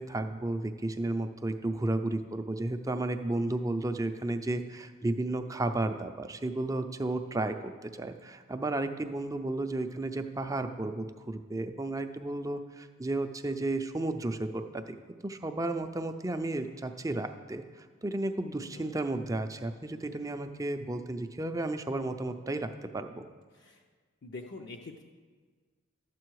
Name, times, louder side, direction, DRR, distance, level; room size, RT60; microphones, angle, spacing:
voice 1, 0.0-15.0 15.2-23.2, right 2 dB, 15° right, 7 dB, 0.4 m, -33 dB
voice 2, 7.1-7.4 18.6-18.9 23.5-23.8 24.2-25.0, left 3 dB, 55° left, 1 dB, 0.6 m, -46 dB
12.5 x 7.6 x 4.7 m, 1.5 s
head